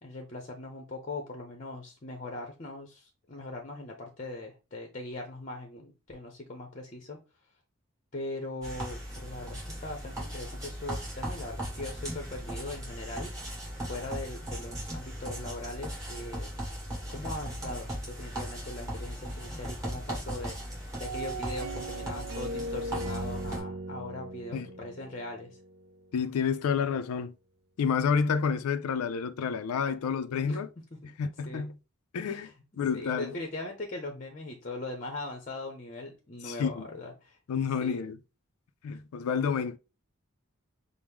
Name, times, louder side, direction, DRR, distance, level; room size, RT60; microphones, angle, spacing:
voice 1, 0.0-7.2 8.1-13.6 13.9-16.5 17.1-20.6 21.0-25.6 30.4-30.6 31.5-31.6 32.2-32.5 32.9-37.4 37.8-38.0, left 2 dB, 35° left, 0.7 m, -40 dB
sound 1, 8.6-23.6, right 1 dB, 15° right, 2.1 m, -38 dB
sound 2, 21.0-26.1, right 2 dB, 70° right, 0.5 m, -38 dB
voice 2, 26.1-27.3 27.8-30.7 31.2-31.8 32.1-33.4 36.4-36.9 37.5-38.2 38.8-39.8, left 6 dB, 85° left, 0.4 m, -29 dB
6.0 x 2.0 x 3.5 m
head